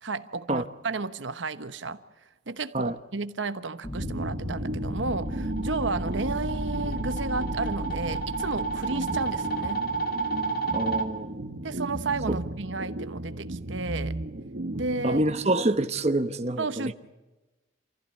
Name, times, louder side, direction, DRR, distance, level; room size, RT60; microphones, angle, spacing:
voice 1, 0.0-2.0 2.5-9.8 11.6-14.2 14.7-15.2 16.6-16.9, right 3 dB, 85° right, 1.1 m, -32 dB
sound 1, 3.8-9.6, left 1 dB, 20° left, 1.1 m, -36 dB
sound 2, 3.9-15.8, right 1 dB, 60° right, 1.0 m, -35 dB
sound 3, 4.9-11.1, right 4 dB, 50° left, 2.5 m, -31 dB
voice 2, 10.7-11.4 15.0-16.9, right 1 dB, 35° right, 1.0 m, -26 dB
27.5 x 15.0 x 9.6 m
head